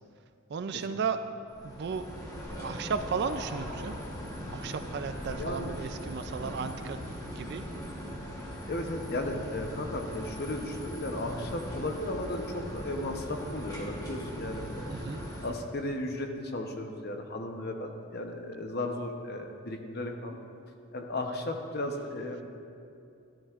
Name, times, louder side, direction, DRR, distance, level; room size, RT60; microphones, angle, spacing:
voice 1, 0.5-1.2 1.6-2.0 2.5-3.9 4.5-7.0 7.4-7.6 14.9-15.2, right 6 dB, 50° right, 9 dB, 0.4 m, -34 dB
sound 1, 1.5-15.5, equal, 15° left, 1.1 m, -40 dB
voice 2, 5.3-5.8 8.7-14.9 15.4-20.4 20.9-22.4, left 1 dB, 45° left, 4 dB, 0.8 m, -35 dB
13.0 x 12.0 x 2.5 m, 2.5 s
head